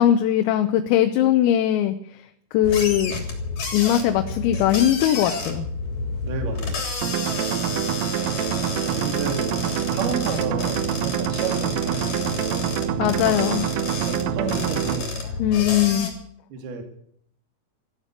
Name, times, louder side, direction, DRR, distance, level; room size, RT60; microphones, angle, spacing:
voice 1, 0.0-2.0 2.5-3.1 3.7-5.7 13.0-13.7 15.4-16.1, left 11 dB, 85° left, 6 dB, 3.6 m, -20 dB
sound 1, 2.6-16.1, left 4 dB, 40° left, 4.1 m, -30 dB
voice 2, 6.2-7.0 8.8-12.8 14.0-15.2 16.5-16.8, right 4 dB, 55° right, 4 dB, 3.8 m, -32 dB
sound 2, 7.0-15.0, right 12 dB, 85° right, 3.3 m, -26 dB
14.5 x 12.0 x 8.2 m, 0.68 s
omnidirectional pair, 5.9 m